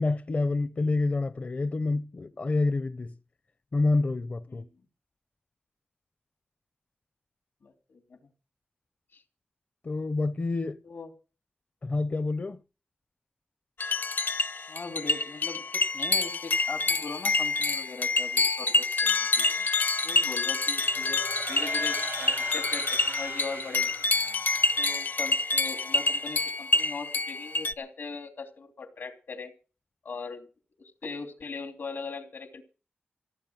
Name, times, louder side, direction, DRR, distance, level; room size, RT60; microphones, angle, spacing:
voice 1, 0.0-3.1 3.7-4.6 9.8-10.8 11.8-12.6, left 3 dB, 45° left, 0.7 m, -28 dB
voice 2, 7.6-8.2 9.1-9.2 10.8-11.1 14.7-19.6 20.0-21.2 21.5-23.9 24.8-29.5 30.0-30.5 30.8-32.6, left 4 dB, 80° left, 3.1 m, -40 dB
sound 1, 13.8-27.7, left 3 dB, 65° left, 0.9 m, -27 dB
sound 2, 20.7-24.8, right 5 dB, 75° right, 0.9 m, -41 dB
17.0 x 8.7 x 7.5 m
wide cardioid pair, 90°, 3 cm